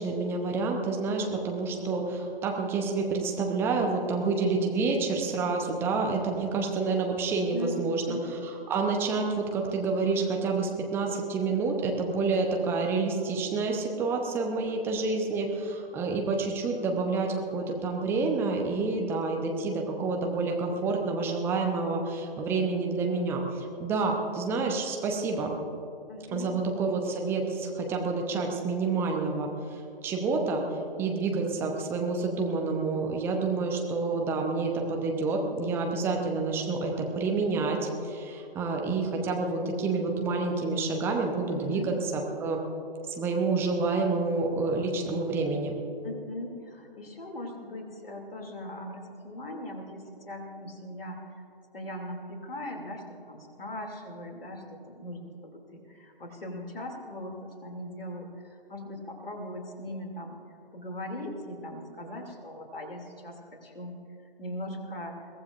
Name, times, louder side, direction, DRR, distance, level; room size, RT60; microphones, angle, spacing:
voice 1, 0.0-8.2 8.4-25.5 26.3-30.7 31.0-42.6 43.1-45.8, right 3 dB, 10° right, 1 dB, 0.9 m, -28 dB
voice 2, 7.5-8.2 26.1-26.6 41.5-41.9 46.0-51.2 51.7-60.4 60.7-63.9 64.4-65.2, left 1 dB, 70° left, 2 dB, 2.8 m, -39 dB
22.5 x 16.5 x 2.6 m, 2.8 s
figure-of-eight pair, 135°, 30 cm